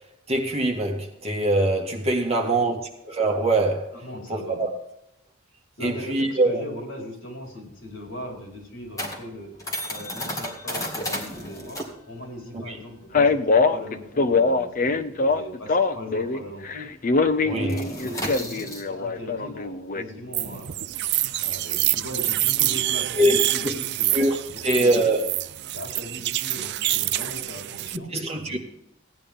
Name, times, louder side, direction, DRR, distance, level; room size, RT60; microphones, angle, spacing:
voice 1, 0.3-2.8 3.0-4.0 4.3-4.7 5.8-6.6 12.5-12.8 17.5-17.8 23.2-23.4 23.6-23.7 24.1-24.4 24.6-25.3 28.1-28.6, right 1 dB, 30° right, 1.9 m, -23 dB
voice 2, 2.2-2.6 3.9-4.6 5.8-9.5 9.9-11.8 12.1-16.9 17.4-20.9 21.4-24.1 24.5-25.1 25.7-28.1 28.5-28.6, left 1 dB, 65° left, 4.2 m, -39 dB
sound 1, 7.4-16.4 16.7-16.9 17.2-23.0, left 1 dB, 15° left, 2.2 m, -35 dB
Male speech man speaking, 13.1-16.4 16.6-20.0, left 4 dB, 45° left, 0.7 m, -22 dB
sound 2, 20.3-28.0, right 15 dB, 60° right, 0.4 m, -26 dB
16.0 x 10.0 x 3.6 m
head